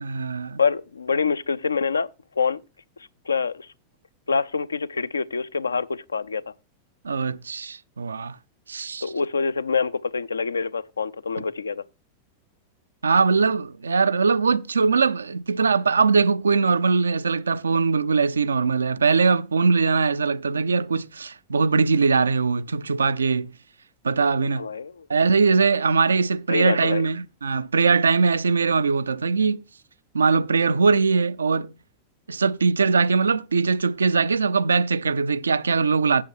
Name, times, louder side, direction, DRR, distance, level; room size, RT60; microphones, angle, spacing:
voice 1, 0.0-0.6 7.0-8.4 8.7-9.1 13.0-23.6 24.0-24.7 25.1-29.6 30.1-31.7 32.3-36.2, right 4 dB, 75° right, 0.4 m, -21 dB
voice 2, 0.6-2.1 2.4-2.6 3.3-3.7 4.3-6.5 9.0-11.9 24.6-25.1 26.5-27.1, left 5 dB, 75° left, 0.5 m, -25 dB
8.5 x 7.0 x 4.7 m
figure-of-eight pair, 90°, 0 cm